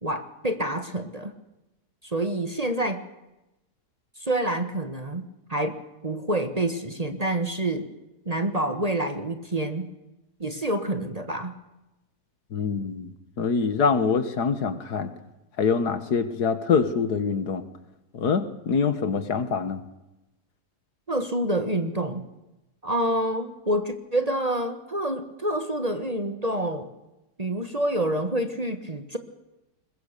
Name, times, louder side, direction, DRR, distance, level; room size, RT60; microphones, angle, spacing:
voice 1, 0.0-1.3 2.0-3.0 4.2-5.2 5.5-7.9 8.2-9.9 10.4-11.5 21.1-22.2 22.8-26.9 27.4-29.2, right 1 dB, 25° right, 9 dB, 1.3 m, -27 dB
voice 2, 12.5-13.1 13.4-15.1 15.6-17.6 18.1-19.8, left 5 dB, 70° left, 11 dB, 2.0 m, -24 dB
22.0 x 21.0 x 6.8 m, 0.95 s
omnidirectional pair, 1.8 m